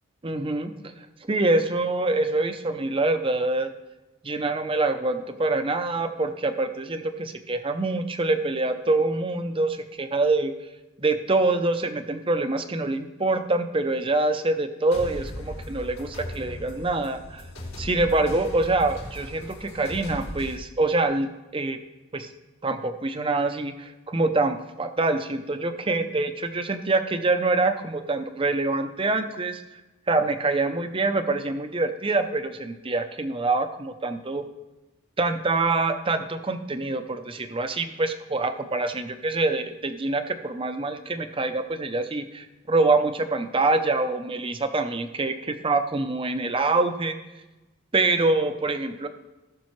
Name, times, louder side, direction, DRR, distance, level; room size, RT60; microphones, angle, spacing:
voice 1, 0.2-3.7 4.2-10.5 11.0-17.4 17.8-21.8 22.1-22.3 22.6-29.6 30.1-34.4 35.2-47.2 47.9-49.1, right 2 dB, 25° right, 8 dB, 0.6 m, -25 dB
sound 1, 14.9-20.5, left 1 dB, 85° left, 4.0 m, -38 dB
18.0 x 6.2 x 3.2 m, 1.1 s
head